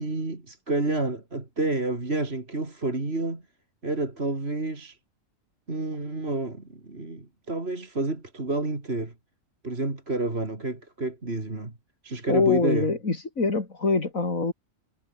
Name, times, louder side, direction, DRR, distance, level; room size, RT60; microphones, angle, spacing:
voice 1, 0.0-3.4 3.8-5.0 5.7-9.1 9.6-11.7 12.0-12.9, right 2 dB, 50° right, 3.8 m, -29 dB
voice 2, 12.3-14.5, left 3 dB, 80° left, 3.9 m, -24 dB
omnidirectional pair, 1.4 m